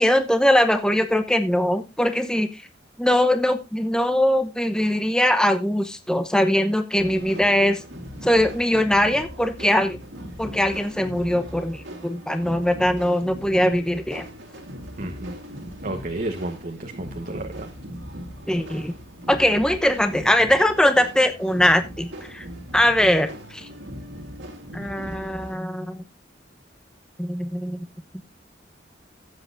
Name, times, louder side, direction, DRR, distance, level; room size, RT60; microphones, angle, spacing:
voice 1, 0.0-2.5 3.0-7.8 8.2-10.0 10.4-14.2 18.5-18.9 19.3-22.4 22.7-23.7 24.7-26.0 27.2-27.9, left 1 dB, 5° left, 8 dB, 0.9 m, -21 dB
sound 1, 7.0-25.6, equal, 70° right, 2.8 m, -39 dB
voice 2, 15.0-15.4 15.8-17.7, right 1 dB, 45° right, 4 dB, 1.2 m, -32 dB
16.0 x 7.8 x 2.6 m, 0.24 s
head